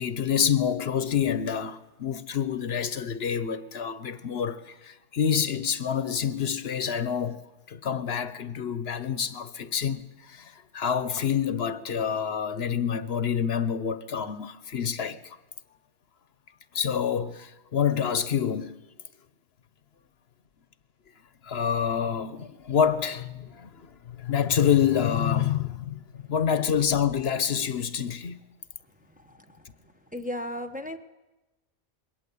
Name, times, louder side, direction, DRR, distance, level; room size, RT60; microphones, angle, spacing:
voice 1, 0.0-7.4 7.7-15.4 16.7-18.8 21.4-28.4, left 8 dB, 70° left, 1.1 m, -27 dB
voice 2, 29.1-29.7 30.1-31.0, left 1 dB, 10° right, 1.1 m, -35 dB
22.0 x 18.0 x 8.4 m
omnidirectional pair, 1.1 m